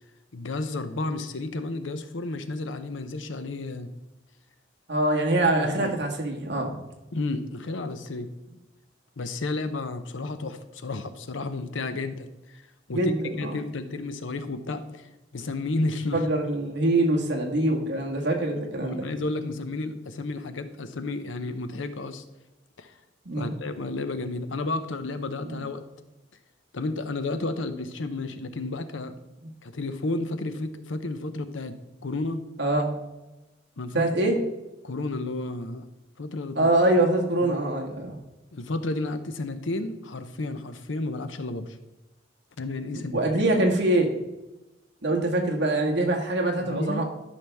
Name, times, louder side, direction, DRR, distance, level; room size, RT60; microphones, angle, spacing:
voice 1, 0.3-3.9 5.6-5.9 7.1-8.3 9.2-12.6 12.9-16.3 18.5-22.2 22.8-22.9 23.4-25.8 26.7-29.1 29.6-32.4 33.8-34.2 34.8-35.9 36.2-36.7 37.0-37.1 37.4-37.5 38.5-41.8 42.6-43.4 46.6-47.0, left 2 dB, 80° left, 10 dB, 0.7 m, -32 dB
voice 2, 4.9-6.8 12.9-13.5 16.1-19.0 23.2-23.5 25.4-25.6 32.6-32.9 33.9-34.4 36.5-38.2 42.9-44.1 45.0-47.0, right 1 dB, 60° right, 0 dB, 1.6 m, -24 dB
12.5 x 5.8 x 3.5 m, 1.0 s
head